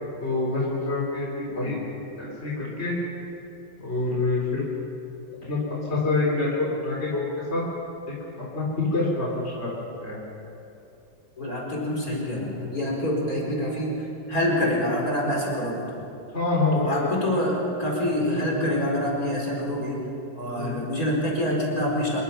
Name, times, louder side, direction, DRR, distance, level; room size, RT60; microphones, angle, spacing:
voice 1, 0.2-1.8 2.2-2.9 3.8-4.7 5.4-5.6 5.9-7.6 8.1-9.7 10.0-10.2 16.3-17.1 20.5-20.8, left 3 dB, 35° left, -5 dB, 4.0 m, -26 dB
voice 2, 11.4-15.9 16.7-20.0 20.3-22.2, left 1 dB, 50° left, -2 dB, 5.0 m, -26 dB
26.5 x 22.5 x 5.8 m, 2.8 s
omnidirectional pair, 2.0 m